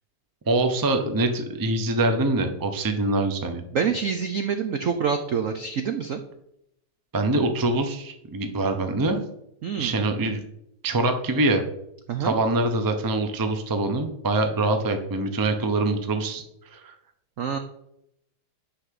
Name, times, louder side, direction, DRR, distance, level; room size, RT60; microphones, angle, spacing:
voice 1, 0.5-3.6 7.1-9.2 9.8-10.4 10.8-11.6 12.2-16.4 16.7-16.9, right 2 dB, 30° right, 6 dB, 0.4 m, -24 dB
voice 2, 3.7-6.2 9.6-10.0 12.1-12.4 17.4-17.6, right 6 dB, 75° right, 7 dB, 0.7 m, -26 dB
10.0 x 4.2 x 7.6 m, 0.78 s
omnidirectional pair, 2.3 m